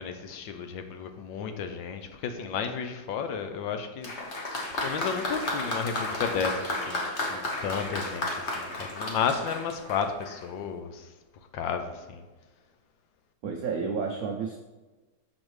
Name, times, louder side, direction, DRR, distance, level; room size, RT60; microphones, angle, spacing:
voice 1, 0.0-7.0 7.3-11.1 11.5-12.3, left 6 dB, 75° left, 7 dB, 1.3 m, -33 dB
Applause, 4.0-10.5, left 2 dB, 45° left, 1.0 m, -33 dB
voice 2, 13.4-14.6, right 5 dB, 80° right, 2 dB, 0.8 m, -31 dB
6.3 x 6.2 x 3.1 m, 1.2 s
omnidirectional pair, 2.2 m